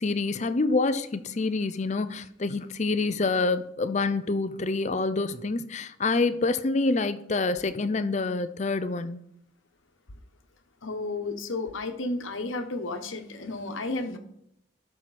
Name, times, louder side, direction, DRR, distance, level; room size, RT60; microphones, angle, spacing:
voice 1, 0.0-9.2, left 3 dB, 35° left, 0.5 m, -27 dB
voice 2, 10.8-14.2, left 2 dB, 80° left, 1.1 m, -32 dB
12.5 x 6.0 x 4.2 m
head